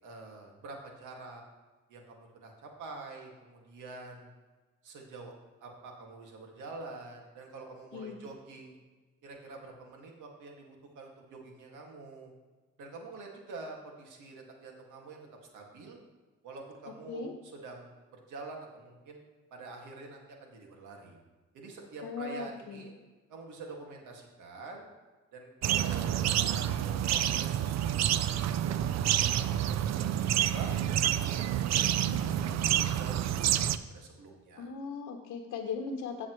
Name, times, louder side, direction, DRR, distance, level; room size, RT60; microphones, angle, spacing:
voice 1, 0.0-1.4 1.9-4.3 4.8-5.3 5.6-8.8 9.2-12.3 12.8-15.3 15.5-16.0 16.4-19.2 19.5-21.2 21.5-22.9 23.3-24.8 25.3-28.8 29.2-30.9 31.2-34.7, right 3 dB, 80° right, 1 dB, 2.1 m, -47 dB
voice 2, 22.0-22.8 34.6-36.3, left 5 dB, 70° left, 2 dB, 1.0 m, -38 dB
sound 1, 25.6-33.8, right 11 dB, 60° right, 0.5 m, -28 dB
15.0 x 7.4 x 3.1 m, 1.3 s
cardioid pair, 90°, 30 cm